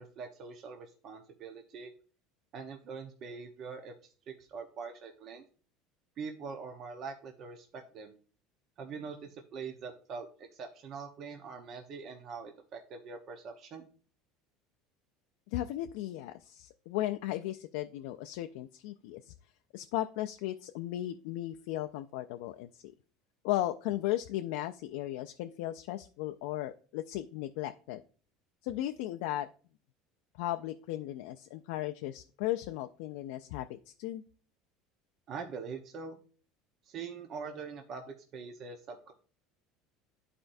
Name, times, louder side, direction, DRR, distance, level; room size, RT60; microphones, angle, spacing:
voice 1, 0.0-1.9 2.5-3.9 4.3-5.4 6.2-8.1 8.8-13.9 35.3-36.2 36.8-39.1, right 5 dB, 50° right, 4 dB, 0.9 m, -43 dB
voice 2, 15.5-19.3 19.7-22.9 23.4-28.0 28.6-29.5 30.4-34.2, left 14 dB, 80° left, 6 dB, 0.4 m, -36 dB
11.0 x 4.3 x 2.6 m, 0.41 s
supercardioid pair, 115°, 0 cm